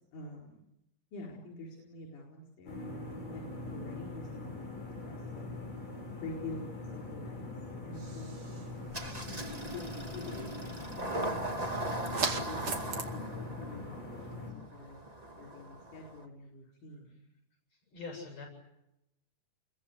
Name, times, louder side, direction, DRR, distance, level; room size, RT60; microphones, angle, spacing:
voice 1, 0.1-0.6 1.1-4.7 5.0-5.5 6.2-7.5 7.9-8.6 9.7-9.8 10.1-12.1 12.4-12.8 13.1-15.0 15.3-17.2, left 2 dB, 70° left, -1 dB, 6.1 m, -47 dB
sound 1, 2.7-14.5, left 2 dB, 35° left, 7.4 m, -43 dB
sound 2, 7.9-13.0, right 5 dB, 45° right, 2.8 m, -41 dB
Engine starting, 8.9-16.2, right 1 dB, 15° right, 1.6 m, -39 dB
voice 2, 17.7-18.5, left 4 dB, 55° left, 3 dB, 9.2 m, -44 dB
29.5 x 22.5 x 8.2 m, 0.89 s
omnidirectional pair, 3.7 m